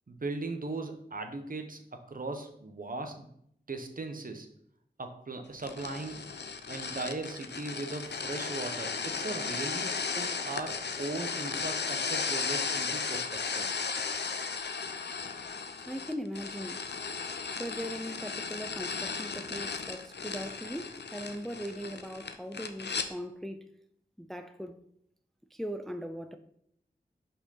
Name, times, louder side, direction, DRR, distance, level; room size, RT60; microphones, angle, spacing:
voice 1, 0.1-3.3 3.7-4.5 5.0-6.2 6.7-13.7, right 3 dB, 50° right, 0.9 m, -38 dB
sound 1, 5.6-23.1, left 5 dB, 75° left, 0.6 m, -35 dB
voice 2, 15.9-16.8 17.6-23.7 24.2-24.7 25.5-26.4, equal, ahead, 0.4 m, -39 dB
5.5 x 4.4 x 5.5 m
wide cardioid pair, 65°, 18 cm